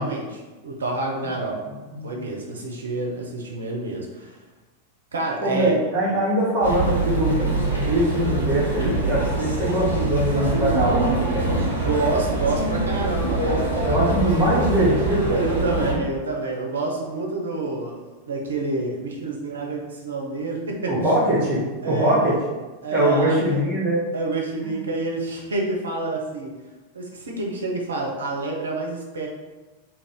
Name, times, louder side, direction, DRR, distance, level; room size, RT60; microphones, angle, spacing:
voice 1, 0.0-1.6 2.0-4.4 5.1-5.8 11.7-14.2 15.3-20.9 21.8-22.4 22.8-23.6 24.1-26.5 26.9-29.3, right 2 dB, 70° right, -1 dB, 0.6 m, -28 dB
voice 2, 5.4-11.7 13.8-15.4 20.9-22.3 22.9-24.0 24.6-24.7, right 1 dB, 35° right, -8 dB, 0.8 m, -22 dB
sound 1, 6.6-15.9, right 2 dB, 85° left, 0.7 m, -24 dB
2.5 x 2.4 x 3.4 m, 1.2 s
figure-of-eight pair, 90°, 0 cm